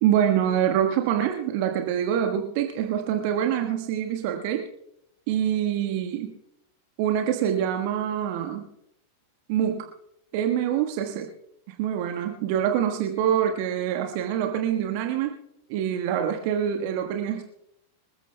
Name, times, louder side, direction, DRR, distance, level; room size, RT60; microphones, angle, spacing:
voice 1, 0.0-4.7 5.3-6.3 7.0-8.7 9.5-9.9 10.3-11.3 11.8-15.4 15.7-17.4, right 9 dB, 45° right, 4 dB, 1.4 m, -25 dB
26.0 x 15.0 x 2.2 m, 0.79 s
figure-of-eight pair, 90°, 0 cm